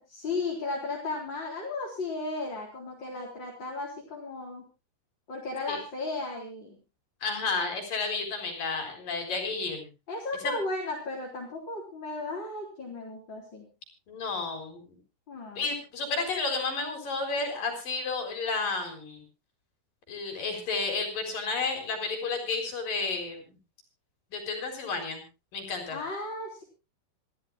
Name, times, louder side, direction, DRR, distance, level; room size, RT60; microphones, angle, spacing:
voice 1, 0.1-4.6 5.3-6.8 10.1-13.7 15.3-15.6 25.9-26.6, left 3 dB, 25° left, -2 dB, 4.1 m, -35 dB
voice 2, 7.2-9.9 10.4-10.5 14.1-15.0 15.6-19.2 20.1-23.5 24.3-25.2 25.5-26.0, left 4 dB, 50° left, 5 dB, 5.4 m, -31 dB
28.0 x 13.5 x 2.3 m, 0.29 s
omnidirectional pair, 5.3 m